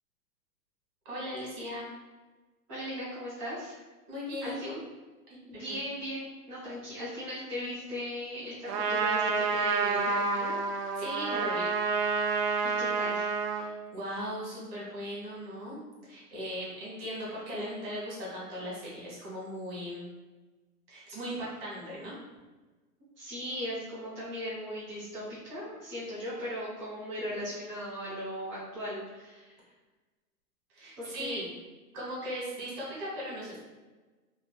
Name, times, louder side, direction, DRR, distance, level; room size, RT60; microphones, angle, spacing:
voice 1, 1.0-1.9 4.1-4.8 5.3-5.8 11.0-11.7 13.5-15.8 16.0-20.0 20.9-22.2 30.7-31.4 31.9-33.6, equal, 40° right, -6 dB, 1.4 m, -38 dB
voice 2, 2.7-3.7 4.4-4.7 5.5-10.6 12.8-13.3 23.2-29.5 31.0-31.4, equal, 10° right, -14 dB, 0.4 m, -38 dB
Trumpet, 8.7-13.7, right 4 dB, 80° right, 0.6 m, -29 dB
2.9 x 2.6 x 2.2 m, 1.2 s
hypercardioid pair, 140°, 47 cm